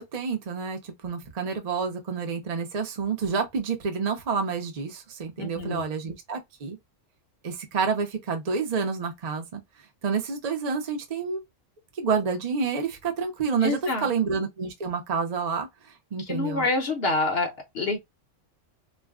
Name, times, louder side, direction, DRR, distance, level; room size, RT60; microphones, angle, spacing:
voice 1, 0.0-6.8 7.4-9.6 10.0-11.4 12.0-15.7 16.1-16.6, right 5 dB, 45° right, 0.6 m, -28 dB
voice 2, 5.4-5.8 13.6-14.1 16.3-18.0, left 2 dB, 60° left, 0.8 m, -27 dB
2.4 x 2.1 x 3.5 m
omnidirectional pair, 1.3 m